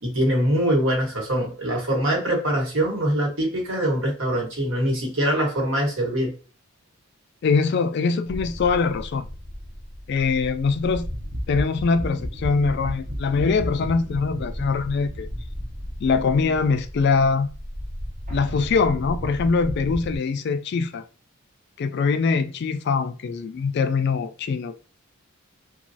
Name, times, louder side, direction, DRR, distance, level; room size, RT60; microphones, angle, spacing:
voice 1, 0.0-6.3, right 1 dB, 65° right, 1.2 m, -23 dB
voice 2, 7.4-9.2 10.1-11.1 11.5-15.3 16.0-17.5 18.3-21.0 21.8-24.8, left 4 dB, 50° left, 0.3 m, -23 dB
sound 1, 8.3-20.2, equal, 35° right, 0.6 m, -34 dB
3.1 x 2.2 x 2.6 m
head